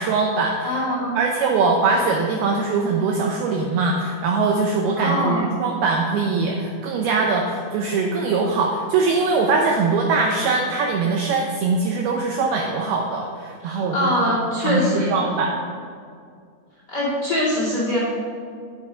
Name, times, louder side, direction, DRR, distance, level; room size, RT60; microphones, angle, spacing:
voice 1, 0.0-0.8 1.2-14.1 14.6-15.5, right 4 dB, 80° right, 1 dB, 2.3 m, -22 dB
voice 2, 0.6-1.2 5.0-5.5 13.6-15.2 16.9-18.0, left 1 dB, 30° left, -7 dB, 2.0 m, -23 dB
9.3 x 8.9 x 5.0 m, 2.2 s
omnidirectional pair, 5.3 m